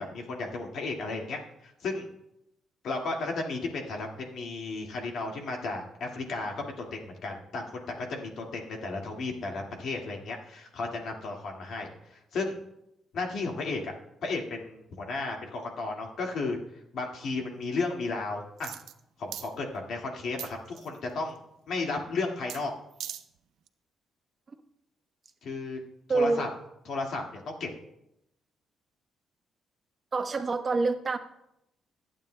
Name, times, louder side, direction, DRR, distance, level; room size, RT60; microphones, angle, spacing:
voice 1, 0.0-2.1 2.8-12.6 13.1-13.9 14.2-16.6 16.9-18.7 19.2-21.4 21.7-22.7 25.4-25.8 26.1-26.5 26.9-27.7, left 3 dB, 70° left, 1 dB, 2.0 m, -34 dB
sound 1, 18.6-19.0 19.3-19.5 20.4-21.0 22.5-22.6 22.9-23.2 23.7-23.8, right 11 dB, 80° right, 0.5 m, -39 dB
voice 2, 26.1-26.5 30.1-31.2, right 3 dB, 35° right, 7 dB, 1.1 m, -26 dB
25.0 x 8.8 x 2.2 m, 0.83 s
cardioid pair, 90°, 0 cm